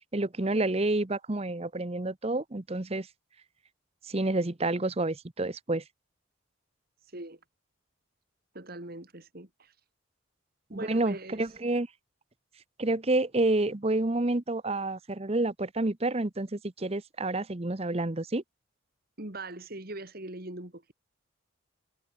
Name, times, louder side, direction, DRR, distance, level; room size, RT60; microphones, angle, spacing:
voice 1, 0.1-3.1 4.1-5.8 10.7-11.9 12.8-18.4, right 2 dB, 30° right, 0.9 m, -29 dB
voice 2, 7.0-7.4 8.5-9.8 10.7-11.6 19.2-20.9, right 2 dB, 45° right, 2.7 m, -41 dB
head